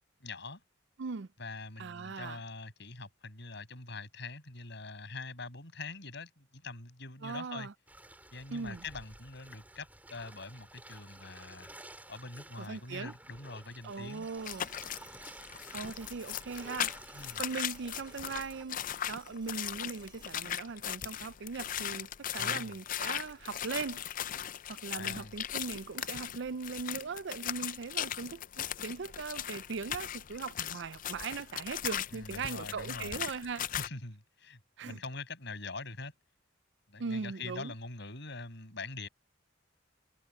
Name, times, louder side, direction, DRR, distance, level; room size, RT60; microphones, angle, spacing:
voice 1, 0.2-0.6 1.4-7.7 8.3-11.7 12.1-14.3 17.1-17.4 22.4-22.8 24.9-25.3 32.1-33.2 33.7-36.1 36.9-39.1, left 3 dB, 60° left, 6.8 m, -44 dB
voice 2, 1.8-2.4 7.2-7.7 8.5-8.8 12.6-13.1 13.8-14.7 15.7-16.9 17.4-18.8 19.1-24.0 24.7-33.7 34.8-35.0 37.0-37.7, right 5 dB, 60° right, 0.5 m, -39 dB
sound 1, 7.9-18.6, right 1 dB, 10° right, 3.1 m, -53 dB
sound 2, 13.9-22.0 24.1-24.2, right 4 dB, 25° right, 4.8 m, -61 dB
sound 3, 14.4-33.9, left 10 dB, 40° left, 0.4 m, -38 dB
head